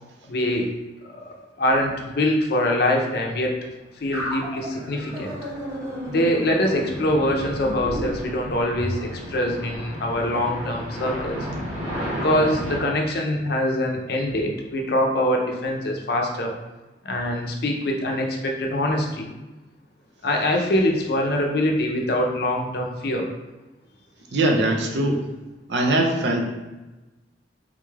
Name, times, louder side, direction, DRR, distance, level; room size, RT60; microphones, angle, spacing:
voice 1, 0.3-0.7 1.6-3.6 4.0-5.3 6.1-11.4 12.1-16.5 17.0-19.3 20.2-23.2, left 1 dB, 60° left, 1 dB, 0.5 m, -24 dB
sound 1, 4.1-9.0, equal, 15° right, 0.7 m, -33 dB
sound 2, 5.0-12.8, equal, 40° right, 1.0 m, -34 dB
voice 2, 24.3-25.2 25.7-26.4, right 1 dB, 70° right, 2 dB, 0.5 m, -21 dB
3.7 x 2.3 x 3.2 m, 1.1 s
head